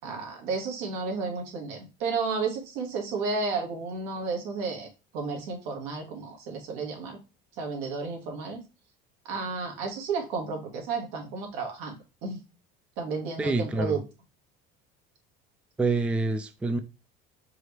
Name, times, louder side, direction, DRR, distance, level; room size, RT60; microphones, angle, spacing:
voice 1, 0.0-4.9 5.1-7.2 7.6-8.6 9.3-12.4 13.0-14.0, right 4 dB, 85° right, 2 dB, 1.8 m, -32 dB
voice 2, 13.4-14.0 15.8-16.8, right 3 dB, 5° right, 8 dB, 0.3 m, -26 dB
4.7 x 3.2 x 3.2 m, 0.28 s
cardioid pair, 145°, 19 cm